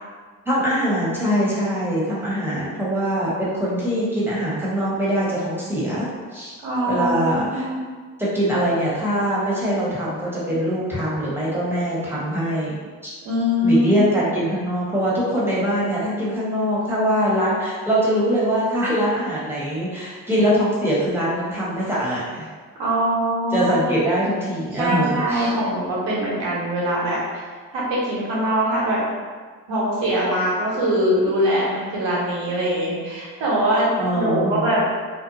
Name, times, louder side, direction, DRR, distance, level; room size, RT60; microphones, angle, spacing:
voice 1, 0.4-6.1 6.3-6.6 6.9-7.7 8.2-12.8 13.0-13.1 13.6-22.5 23.5-25.5 34.0-34.8, equal, 5° right, -8 dB, 1.2 m, -23 dB
voice 2, 6.6-7.8 13.2-14.0 22.8-23.7 24.8-27.4 27.7-29.0 29.7-34.9, equal, 70° right, -6 dB, 1.0 m, -22 dB
2.6 x 2.1 x 2.7 m, 1.5 s
hypercardioid pair, 45°, 46 cm